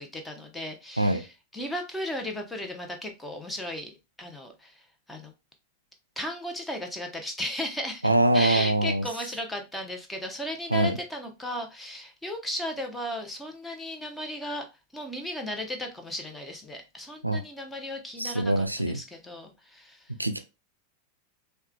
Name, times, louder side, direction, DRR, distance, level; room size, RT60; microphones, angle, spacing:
voice 1, 0.0-3.9 4.2-5.3 6.2-14.6 14.9-20.1, left 1 dB, 10° left, 0.7 m, -35 dB
voice 2, 8.0-9.0 10.7-11.0 17.2-17.4 18.2-19.0 20.2-20.4, right 1 dB, 85° right, 0.4 m, -23 dB
4.5 x 2.2 x 2.2 m
figure-of-eight pair, 90°, 0 cm